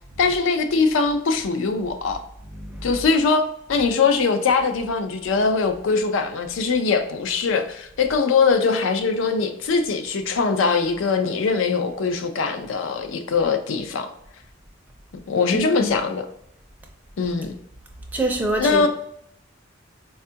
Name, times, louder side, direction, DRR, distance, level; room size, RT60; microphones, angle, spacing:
voice 1, 0.2-2.2 2.8-14.1 15.3-16.3 17.2-17.6 18.6-18.9, left 4 dB, 80° left, 7 dB, 0.4 m, -22 dB
voice 2, 2.5-3.0 15.5-15.9 18.1-18.9, right 2 dB, 10° right, 1 dB, 0.4 m, -26 dB
4.2 x 2.3 x 2.7 m, 0.74 s
head